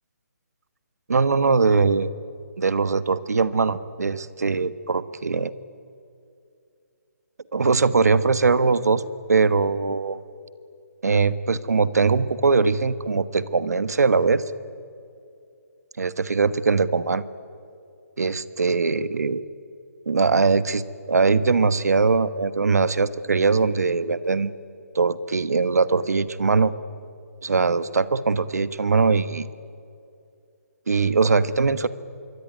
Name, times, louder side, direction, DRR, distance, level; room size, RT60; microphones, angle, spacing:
voice 1, 1.1-2.1 2.6-5.5 7.5-9.0 9.3-10.2 11.0-14.4 16.0-17.2 18.2-19.4 20.1-24.5 24.9-26.7 27.4-29.5 30.9-31.9, right 4 dB, 80° right, 15 dB, 1.3 m, -21 dB
26.5 x 23.0 x 9.6 m, 2.5 s
hypercardioid pair, 150°, 9 cm